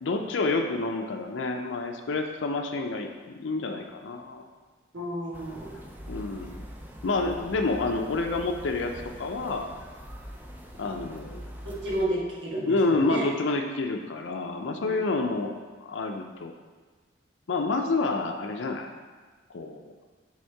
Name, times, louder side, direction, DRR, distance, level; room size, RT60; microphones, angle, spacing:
voice 1, 0.0-3.1 3.4-4.4 6.1-6.6 7.0-9.7 10.8-11.4 12.7-15.5 15.8-16.5 17.5-18.9 19.5-19.9, left 3 dB, 80° left, 3 dB, 0.5 m, -28 dB
voice 2, 4.9-5.7 11.6-13.2 14.8-14.9, right 1 dB, 70° right, -6 dB, 1.5 m, -31 dB
sound 1, 5.3-12.1, equal, 10° right, 0.4 m, -43 dB
6.3 x 3.5 x 4.6 m, 1.4 s
head